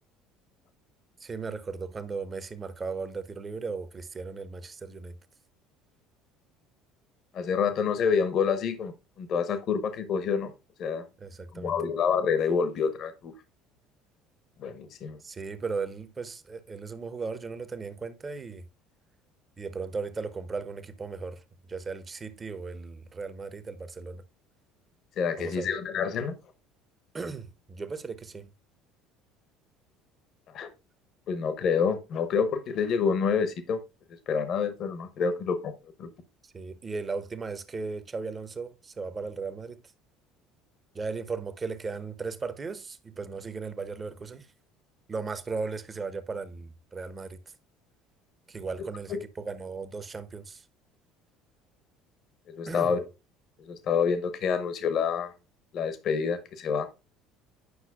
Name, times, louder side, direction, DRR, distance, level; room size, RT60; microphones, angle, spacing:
voice 1, 1.2-5.2 11.2-11.8 15.2-18.6 19.6-21.4 21.7-24.2 25.4-25.7 27.1-28.5 36.4-39.8 40.9-44.5 45.1-47.4 48.5-50.6 52.7-52.9, right 4 dB, 25° right, 0.9 m, -36 dB
voice 2, 7.3-8.9 9.2-10.5 10.8-11.0 11.5-13.3 14.6-15.2 25.2-26.4 30.5-30.7 31.3-33.8 34.3-35.7 36.0-36.1 49.1-49.2 52.5-53.0 53.6-55.3 55.7-56.9, left 6 dB, 50° left, 1.1 m, -27 dB
9.7 x 5.8 x 2.4 m
figure-of-eight pair, 60°, 0 cm